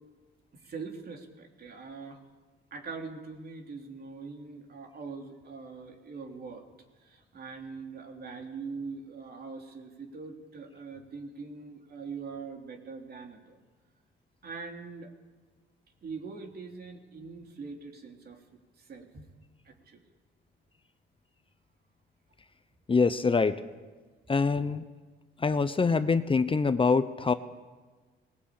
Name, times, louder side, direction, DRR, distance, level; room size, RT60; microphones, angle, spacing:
voice 1, 0.6-2.2 2.7-6.6 7.0-13.6 14.4-15.1 16.0-18.4 18.8-19.3 19.6-20.0, right 4 dB, 50° right, 3 dB, 3.4 m, -42 dB
voice 2, 22.9-23.6 24.3-24.8 25.4-27.3, left 4 dB, 25° left, 12 dB, 0.9 m, -25 dB
20.0 x 18.5 x 8.6 m, 1.4 s
cardioid pair, 90°, 20 cm